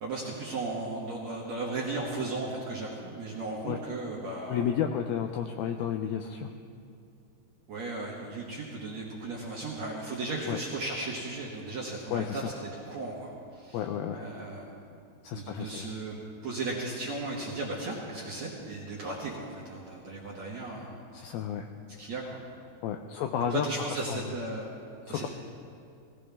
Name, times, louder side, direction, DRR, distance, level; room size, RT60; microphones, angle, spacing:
voice 1, 0.0-4.6 7.7-14.7 15.3-16.2 16.4-20.9 22.0-22.4 23.4-24.7 25.1-25.3, right 2 dB, 65° right, -4 dB, 1.8 m, -36 dB
voice 2, 4.5-6.5 10.5-10.6 12.1-12.4 13.7-14.2 15.2-15.9 21.1-21.7 22.8-24.3 25.1-25.3, left 8 dB, 85° left, 5 dB, 2.1 m, -32 dB
19.0 x 16.0 x 3.4 m, 2.5 s
omnidirectional pair, 4.9 m